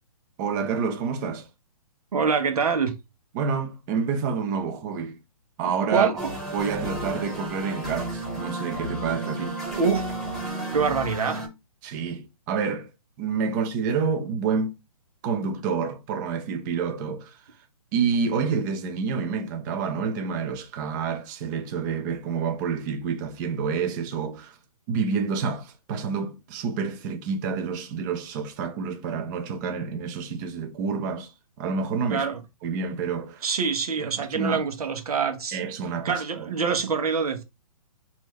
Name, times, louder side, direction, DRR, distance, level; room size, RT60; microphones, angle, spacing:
voice 1, 0.4-1.5 3.3-5.2 5.6-6.1 6.5-9.6 11.8-12.9 13.2-14.7 15.2-17.4 17.9-24.6 24.9-32.2 32.6-33.4 34.0-34.6 35.5-36.5, right 5 dB, 30° right, 0.8 m, -28 dB
voice 2, 2.1-2.9 5.9-6.3 9.7-10.0 10.7-11.4 32.1-32.4 33.4-35.6 36.0-37.4, right 5 dB, 75° right, 1.1 m, -25 dB
sound 1, 6.2-11.5, right 1 dB, ahead, 1.4 m, -32 dB
4.5 x 2.8 x 3.1 m
hypercardioid pair, 145°, 19 cm